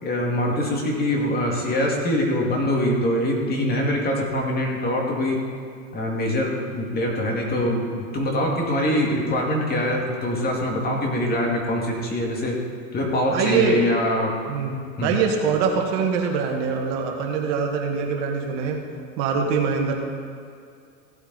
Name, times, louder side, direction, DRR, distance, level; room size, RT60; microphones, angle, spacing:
voice 1, 0.0-5.4 5.9-7.9 8.1-12.5 12.9-14.3 15.0-15.1, left 1 dB, 25° left, -1 dB, 2.2 m, -23 dB
voice 2, 13.3-13.8 14.5-18.8 19.2-19.9, right 5 dB, 55° right, 1 dB, 1.9 m, -23 dB
16.0 x 8.5 x 4.1 m, 2.4 s
supercardioid pair, 125°, 41 cm